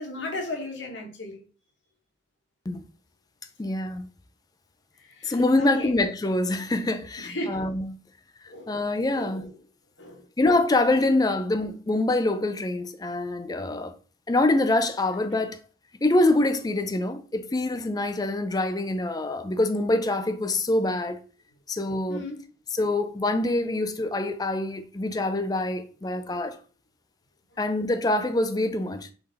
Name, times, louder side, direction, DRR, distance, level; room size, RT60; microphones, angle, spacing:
voice 1, 0.0-1.4 5.0-5.9 7.2-7.6 8.5-8.8 9.1-9.5 10.0-10.3 22.1-22.5 27.5-27.6, left 1 dB, 70° left, 1.2 m, -36 dB
voice 2, 3.6-4.1 5.2-7.9 8.7-9.4 10.4-14.0 14.3-15.6 16.0-21.2 21.7-22.3 22.7-26.6 27.6-29.1, left 2 dB, 20° left, 0.4 m, -25 dB
3.8 x 3.5 x 3.9 m
head